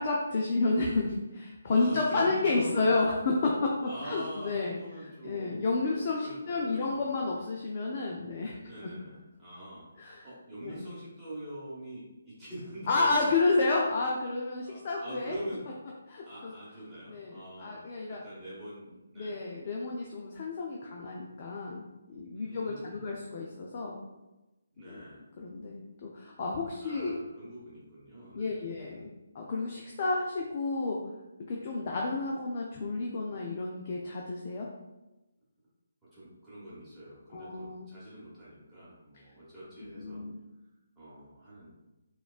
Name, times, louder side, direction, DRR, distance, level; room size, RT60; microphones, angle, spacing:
voice 1, 0.0-3.7 4.0-8.6 10.0-10.3 10.6-10.8 12.9-15.4 16.1-16.5 17.1-18.2 19.2-24.0 24.9-25.0 25.4-27.1 28.3-31.0 31.5-34.7 37.3-37.9 39.8-40.4, left 3 dB, 35° left, -2 dB, 0.4 m, -31 dB
voice 2, 1.7-3.0 3.8-7.2 8.6-9.8 10.2-13.6 14.6-15.6 16.2-18.9 19.1-19.4 22.3-23.3 24.7-25.3 26.8-28.6 28.9-29.1 36.1-40.2 41.0-41.7, right 1 dB, 5° right, -12 dB, 1.1 m, -44 dB
4.2 x 2.3 x 2.4 m, 1.0 s
figure-of-eight pair, 145°, 0 cm